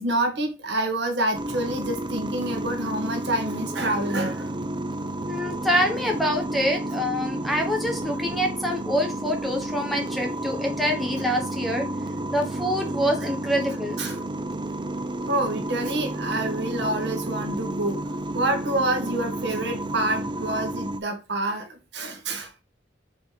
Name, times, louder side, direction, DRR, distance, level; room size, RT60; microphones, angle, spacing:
voice 1, 0.0-4.5 14.0-14.2 15.3-22.6, right 1 dB, 70° right, 1.6 m, -27 dB
sound 1, 1.3-21.0, right 1 dB, 25° right, 0.6 m, -31 dB
voice 2, 5.3-11.9 12.3-14.0, equal, ahead, 1.4 m, -26 dB
5.1 x 4.1 x 5.1 m
head